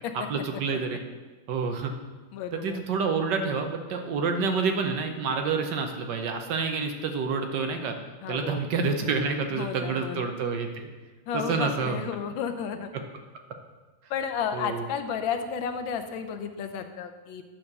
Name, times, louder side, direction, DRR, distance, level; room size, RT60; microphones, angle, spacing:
voice 1, 0.1-1.0 1.5-1.9 2.5-7.9 8.3-10.9 11.3-12.0 14.5-14.8, right 4 dB, 65° right, 5 dB, 1.4 m, -28 dB
voice 2, 2.3-2.8 8.2-8.6 9.5-10.2 11.3-12.9 14.1-17.4, left 7 dB, 80° left, 7 dB, 1.5 m, -32 dB
9.7 x 4.5 x 6.6 m, 1.3 s
omnidirectional pair, 2.1 m